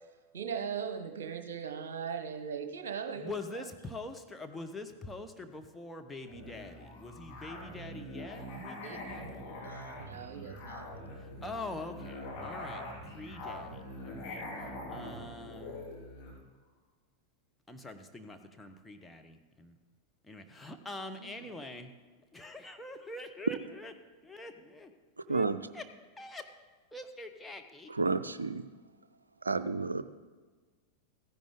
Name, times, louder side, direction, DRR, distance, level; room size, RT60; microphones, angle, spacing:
voice 1, 0.3-3.7 8.8-9.0 9.6-10.9 21.2-21.5, right 7 dB, 60° right, 6 dB, 1.1 m, -39 dB
voice 2, 3.2-9.5 11.4-14.4 14.9-15.9 17.7-19.7 20.3-21.9 22.3-23.9 24.2-24.9 25.3-25.5 25.7-25.8 26.2-26.5 26.9-27.9, left 2 dB, 5° left, 4 dB, 1.0 m, -44 dB
Musical instrument, 6.2-16.4, left 1 dB, 45° left, 3.0 m, -43 dB
voice 3, 27.9-28.7 29.4-30.0, right 3 dB, 80° right, 13 dB, 0.5 m, -31 dB
15.0 x 10.5 x 3.8 m, 1.4 s
figure-of-eight pair, 90°, 0 cm